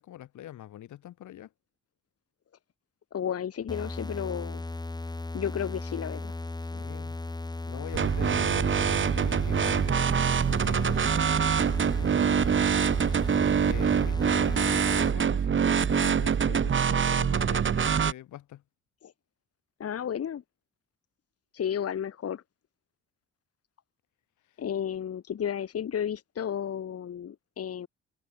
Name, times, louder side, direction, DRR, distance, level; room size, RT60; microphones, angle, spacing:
voice 1, 0.0-1.5 6.6-7.2 7.6-11.3 12.0-13.1 13.6-18.6 24.5-24.6, left 12 dB, 75° left, 3.1 m, -44 dB
voice 2, 3.1-4.6 5.3-6.3 19.0-19.1 19.8-20.4 21.5-22.4 24.6-27.9, left 9 dB, 50° left, 2.0 m, -32 dB
sound 1, 3.7-15.1, left 2 dB, 15° left, 2.1 m, -36 dB
sound 2, 7.9-18.1, right 7 dB, 40° right, 1.5 m, -25 dB
cardioid pair, 90°, 30 cm